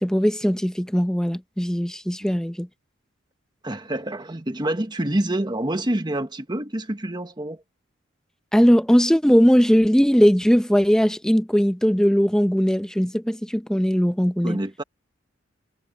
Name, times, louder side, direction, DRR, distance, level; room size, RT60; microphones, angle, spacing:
voice 1, 0.0-2.7 8.5-14.6, equal, 5° left, 0.7 m, -19 dB
voice 2, 3.6-7.6 14.4-14.8, right 1 dB, 25° right, 1.4 m, -27 dB
head